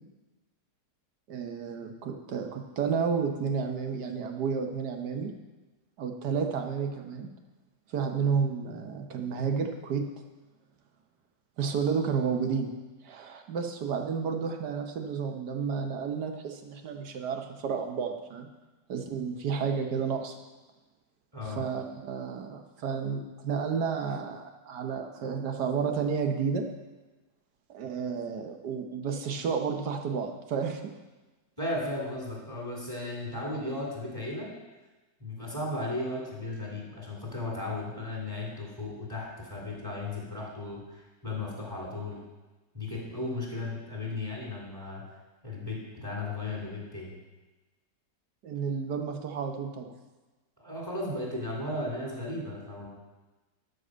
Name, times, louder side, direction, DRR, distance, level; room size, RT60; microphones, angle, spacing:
voice 1, 1.3-5.3 6.0-7.3 7.9-10.1 11.6-12.7 13.0-18.5 18.9-20.4 21.6-26.6 27.7-30.8 48.4-49.9, right 6 dB, 70° right, 4 dB, 1.5 m, -31 dB
voice 2, 21.3-21.6 31.6-34.5 35.2-42.2 42.7-45.1 45.4-47.1 50.6-52.9, left 2 dB, 15° right, -4 dB, 2.7 m, -35 dB
12.5 x 5.2 x 6.2 m, 1.2 s
omnidirectional pair, 1.9 m